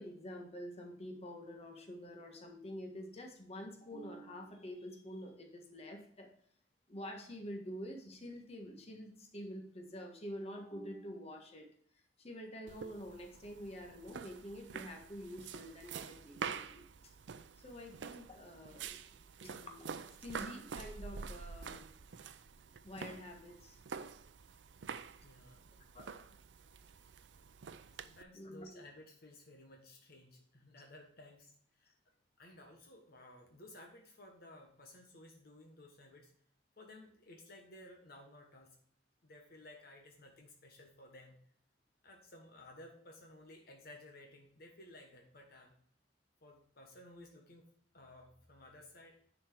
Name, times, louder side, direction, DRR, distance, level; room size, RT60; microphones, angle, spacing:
voice 1, 0.0-6.3 6.9-11.7 11.9-16.9 17.6-19.0 19.4-21.9 22.8-23.8 25.9-26.1 28.3-28.8, equal, 35° left, 2 dB, 1.5 m, -47 dB
sound 1, 12.7-28.2, right 6 dB, 85° right, 0.5 m, -47 dB
voice 2, 25.2-25.7 27.9-31.9 32.4-36.3 36.8-38.8 39.2-41.4 42.0-45.7 46.4-47.7 47.9-49.2, left 1 dB, 60° left, 2 dB, 1.3 m, -56 dB
10.0 x 4.5 x 4.5 m, 0.63 s
head